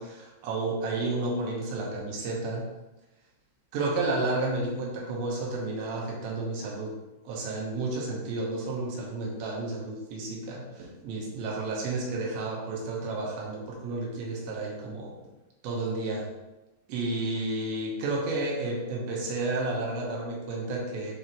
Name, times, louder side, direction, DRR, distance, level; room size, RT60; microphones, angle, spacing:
voice 1, 0.0-2.7 3.7-6.9 7.2-15.1 15.6-16.3 16.9-21.1, right 2 dB, 75° right, -2 dB, 3.3 m, -31 dB
10.5 x 3.6 x 3.1 m, 1.0 s
omnidirectional pair, 5.6 m